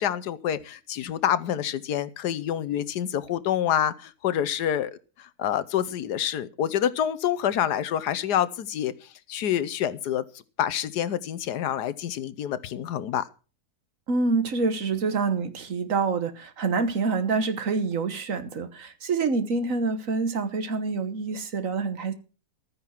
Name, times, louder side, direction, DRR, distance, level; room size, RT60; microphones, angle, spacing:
voice 1, 0.0-8.9 9.3-10.2 10.6-13.3, left 10 dB, 85° left, 1.4 m, -27 dB
voice 2, 14.1-22.1, right 4 dB, 55° right, 1.6 m, -26 dB
13.0 x 9.6 x 5.9 m
omnidirectional pair, 1.7 m